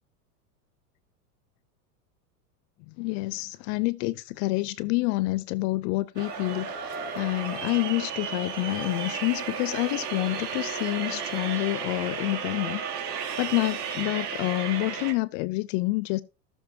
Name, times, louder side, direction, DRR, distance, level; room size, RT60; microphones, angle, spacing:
voice 1, 2.9-12.8 13.4-16.2, left 21 dB, 50° left, 0.6 m, -28 dB
sound 1, 6.1-15.1, right 6 dB, 75° right, 2.9 m, -33 dB
16.0 x 7.1 x 2.8 m
supercardioid pair, 115°, 48 cm